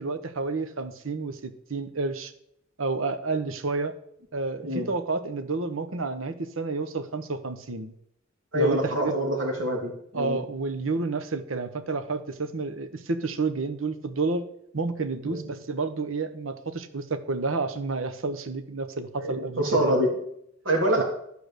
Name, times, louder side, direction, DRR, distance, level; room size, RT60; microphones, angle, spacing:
voice 1, 0.0-2.3 2.8-3.9 4.3-7.9 8.5-9.2 10.1-14.5 14.7-20.0 21.0-21.1, right 3 dB, 85° right, 10 dB, 1.0 m, -30 dB
voice 2, 8.5-10.4 15.2-15.4 19.2-20.1 20.6-21.0, equal, 70° right, 0 dB, 2.9 m, -25 dB
12.5 x 4.9 x 6.7 m, 0.73 s
head